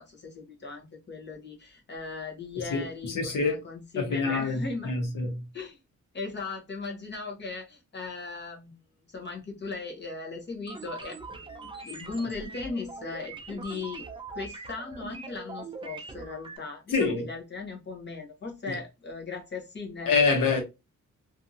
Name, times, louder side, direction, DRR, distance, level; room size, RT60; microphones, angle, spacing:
voice 1, 0.0-4.9 5.5-5.8 6.1-8.7 9.1-14.1 14.3-20.6, left 4 dB, 35° left, 0.8 m, -38 dB
voice 2, 2.7-3.6 3.9-5.3 16.9-17.2 18.7-18.8 20.1-20.6, left 4 dB, 90° left, 1.0 m, -26 dB
sound 1, 10.7-16.6, right 3 dB, 15° right, 0.3 m, -42 dB
2.7 x 2.5 x 2.5 m
wide cardioid pair, 175°, 31 cm